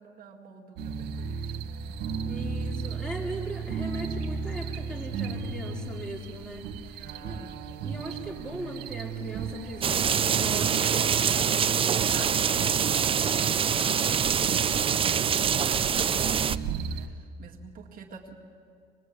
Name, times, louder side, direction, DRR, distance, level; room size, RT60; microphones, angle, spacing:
voice 1, 0.0-1.8 7.0-7.6 13.6-14.1 16.9-18.4, right 6 dB, 55° right, 0 dB, 2.0 m, -48 dB
sound 1, 0.8-17.1, right 6 dB, 85° right, 1.8 m, -35 dB
voice 2, 2.3-7.4 7.8-11.6, right 1 dB, 5° left, -1 dB, 4.7 m, -39 dB
sound 2, 9.8-16.6, right 7 dB, 30° right, 0.5 m, -25 dB
25.5 x 21.0 x 8.5 m, 2.3 s
cardioid pair, 110°, 17 cm